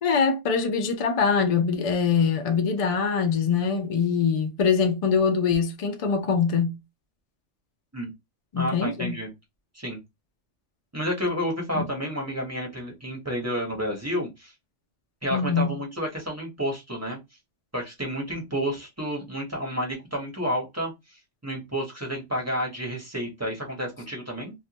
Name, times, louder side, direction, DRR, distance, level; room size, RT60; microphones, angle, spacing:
voice 1, 0.0-6.8 8.5-9.2 11.7-11.8 15.3-15.7, left 6 dB, 65° left, 0.3 m, -23 dB
voice 2, 8.5-9.3 9.7-10.0 10.9-14.5 15.2-17.2 17.7-24.5, equal, 15° right, 0.6 m, -30 dB
2.4 x 2.2 x 2.8 m
omnidirectional pair, 1.2 m